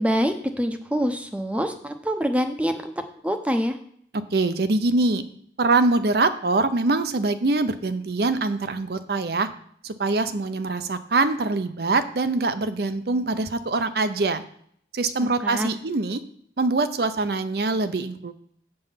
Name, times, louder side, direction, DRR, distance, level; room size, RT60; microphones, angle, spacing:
voice 1, 0.0-2.9 3.2-3.8 15.2-15.7, equal, 5° right, 7 dB, 0.6 m, -25 dB
voice 2, 4.3-5.2 5.6-9.5 9.8-14.4 14.9-16.2 16.6-18.3, right 3 dB, 60° right, 10 dB, 0.6 m, -23 dB
8.1 x 5.4 x 5.7 m, 0.64 s
head